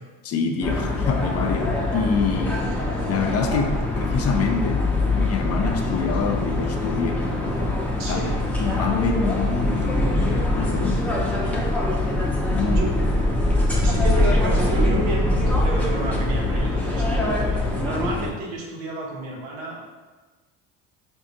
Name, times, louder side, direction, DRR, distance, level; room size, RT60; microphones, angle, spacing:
voice 1, 0.2-2.6 3.1-4.9 5.2-7.3 8.1-8.2 8.6-11.0 12.5-12.8, left 5 dB, 45° left, 5 dB, 0.5 m, -26 dB
sound 1, 0.6-18.3, left 1 dB, 5° left, 0.7 m, -23 dB
voice 2, 8.0-8.4 12.6-13.2 13.8-19.8, right 1 dB, 80° right, -2 dB, 1.0 m, -31 dB
4.9 x 2.6 x 2.5 m, 1.3 s
supercardioid pair, 90°, 36 cm